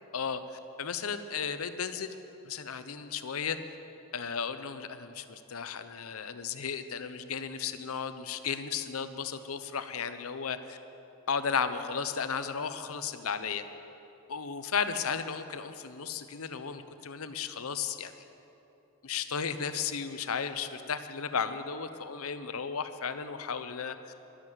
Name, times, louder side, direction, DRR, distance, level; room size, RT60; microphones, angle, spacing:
voice 1, 0.8-2.2 2.4-3.6 4.1-10.8 11.3-13.6 14.3-18.1 19.0-24.0, left 6 dB, 75° left, 11 dB, 0.8 m, -34 dB
12.0 x 11.5 x 7.9 m, 3.0 s
head